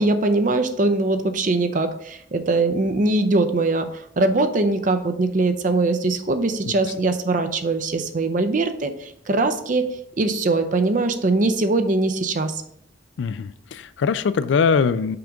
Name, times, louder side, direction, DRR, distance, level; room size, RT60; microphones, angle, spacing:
voice 1, 0.0-9.9 10.2-12.6, right 2 dB, 45° right, 8 dB, 0.5 m, -21 dB
voice 2, 13.2-15.2, left 5 dB, 70° left, 14 dB, 0.3 m, -22 dB
5.9 x 5.1 x 3.5 m, 0.73 s
head